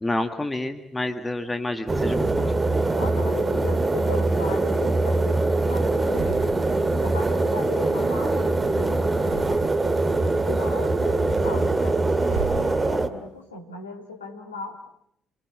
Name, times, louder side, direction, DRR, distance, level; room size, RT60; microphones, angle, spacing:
voice 1, 0.0-2.5, left 2 dB, 15° left, 8 dB, 1.7 m, -29 dB
sound 1, 1.0-2.2 2.9-3.8 4.3-5.5 5.9-7.0 7.2-8.6 9.0-10.1 10.5-13.3, right 3 dB, 90° right, 3.1 m, -40 dB
sound 2, 1.9-13.1, right 2 dB, 25° right, 2.2 m, -23 dB
voice 2, 2.9-6.3 6.8-9.0 10.4-12.1 12.5-14.8, left 3 dB, 85° left, 3 dB, 2.3 m, -37 dB
28.5 x 20.5 x 8.7 m, 0.76 s
figure-of-eight pair, 45°, 0 cm